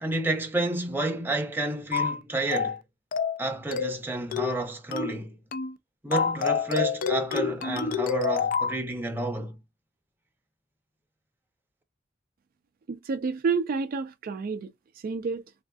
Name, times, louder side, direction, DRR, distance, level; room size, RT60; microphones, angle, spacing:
voice 1, 0.0-2.8 3.4-5.4 6.0-9.6, right 2 dB, 10° right, 0.6 m, -30 dB
sound 1, 1.9-2.2 2.5-2.8 3.1-3.4 3.7-4.0 4.3-4.6 4.9-5.2 5.5-5.7 6.1-8.8, left 6 dB, 45° left, 0.3 m, -27 dB
voice 2, 12.9-14.7 15.0-15.4, right 5 dB, 50° right, 0.3 m, -29 dB
3.4 x 2.5 x 2.2 m
head